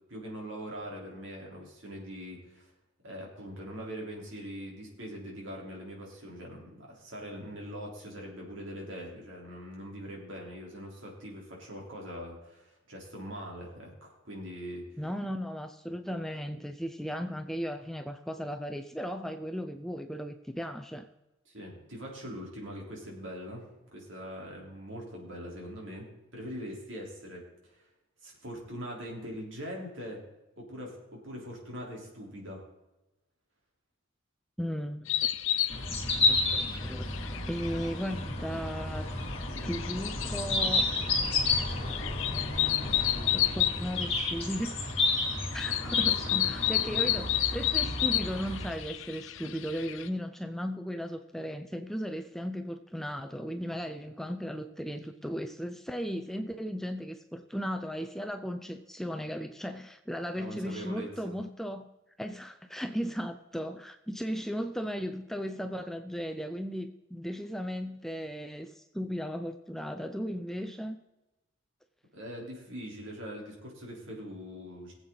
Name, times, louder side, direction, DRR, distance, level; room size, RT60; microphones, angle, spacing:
voice 1, 0.1-2.7 3.0-15.0 21.5-23.7 23.9-27.8 28.2-30.2 30.6-32.6 45.7-46.5 46.9-47.1 60.4-61.1 72.1-74.9, equal, 70° right, -1 dB, 3.7 m, -42 dB
voice 2, 15.0-21.1 34.6-35.3 36.3-39.1 39.6-40.9 43.3-44.7 45.5-61.9 62.2-71.0, equal, ahead, 6 dB, 0.4 m, -36 dB
sound 1, 35.1-50.1, left 13 dB, 75° left, 0.6 m, -32 dB
sound 2, 35.7-48.7, left 3 dB, 30° left, 2.3 m, -31 dB
19.5 x 7.9 x 3.9 m, 1.0 s
head